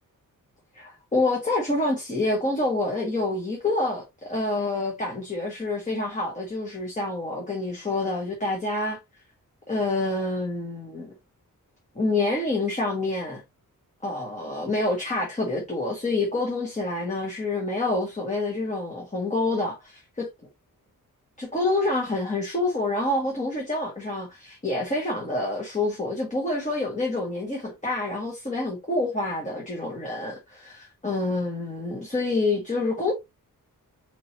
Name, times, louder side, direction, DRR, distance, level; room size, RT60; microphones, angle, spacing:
voice 1, 0.7-9.0 9.7-11.1 11.9-13.4 14.0-20.3 21.4-33.1, left 2 dB, 20° left, 1.5 m, -27 dB
4.7 x 3.7 x 2.9 m
wide cardioid pair, 145°, 34 cm